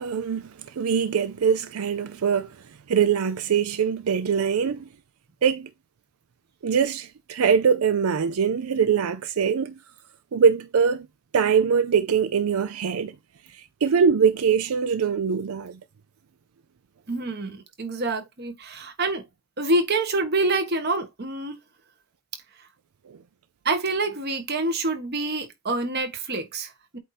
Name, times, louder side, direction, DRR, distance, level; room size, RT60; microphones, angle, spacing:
voice 1, 0.0-2.6 2.9-4.9 5.4-5.7 6.6-9.8 10.3-11.1 11.3-13.2 13.5-15.8 23.1-23.2, right 6 dB, 85° right, 0.5 m, -23 dB
voice 2, 17.1-19.2 19.6-21.6 23.6-27.0, right 2 dB, 50° right, 1.3 m, -26 dB
8.2 x 2.7 x 4.1 m
head